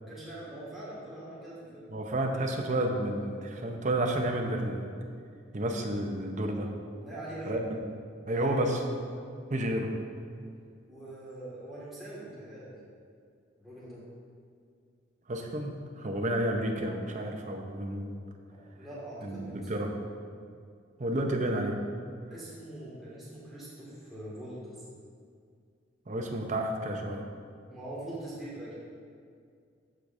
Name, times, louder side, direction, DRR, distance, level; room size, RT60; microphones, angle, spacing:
voice 1, 0.0-1.9 7.0-7.6 8.3-8.7 10.9-12.8 13.6-14.0 18.5-19.9 22.3-24.8 27.7-28.7, right 1 dB, ahead, -10 dB, 1.9 m, -43 dB
voice 2, 1.9-4.9 5.5-6.7 7.5-7.7 8.3-9.0 9.5-9.9 15.3-18.2 19.2-19.9 21.0-21.8 26.1-27.2, right 1 dB, 40° right, 2 dB, 0.7 m, -31 dB
14.0 x 4.9 x 2.6 m, 2.2 s
head